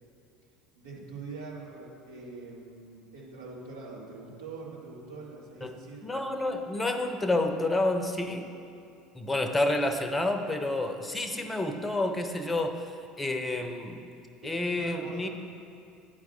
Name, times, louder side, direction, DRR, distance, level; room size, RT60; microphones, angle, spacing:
voice 1, 0.8-6.1 14.4-15.3, right 3 dB, 70° right, -4 dB, 1.9 m, -44 dB
voice 2, 6.0-8.5 9.1-14.1 14.4-15.3, left 2 dB, 15° left, 7 dB, 0.8 m, -29 dB
10.5 x 4.8 x 7.7 m, 2.5 s
figure-of-eight pair, 65°, 0 cm